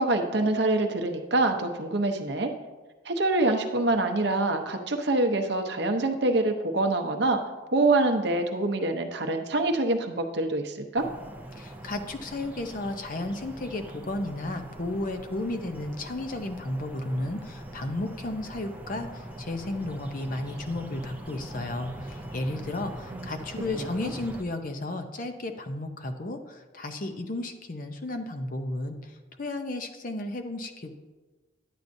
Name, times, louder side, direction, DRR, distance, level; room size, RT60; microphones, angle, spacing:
voice 1, 0.0-2.5 3.0-7.4 7.7-11.1 23.1-23.3 23.7-24.1, right 2 dB, 55° right, 5 dB, 0.7 m, -25 dB
sound 1, 10.9-24.4, right 1 dB, 10° right, 0.5 m, -42 dB
voice 2, 11.5-31.0, left 2 dB, 40° left, 7 dB, 0.6 m, -33 dB
10.5 x 8.4 x 2.6 m, 1.3 s
head